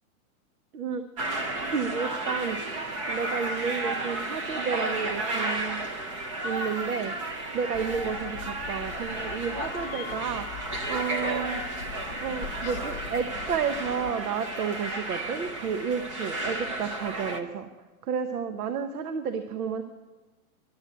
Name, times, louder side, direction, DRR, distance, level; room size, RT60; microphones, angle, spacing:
sound 1, 1.2-17.4, right 2 dB, 20° right, 0.5 m, -33 dB
voice 1, 1.7-2.6 3.1-5.8 6.4-7.1 7.5-10.5 10.9-11.6 12.2-17.7 18.0-19.8, right 6 dB, 80° right, 9 dB, 1.0 m, -31 dB
Meow, 7.7-14.1, left 11 dB, 45° left, 0.5 m, -41 dB
11.5 x 8.1 x 9.1 m, 1.3 s
supercardioid pair, 170°, 44 cm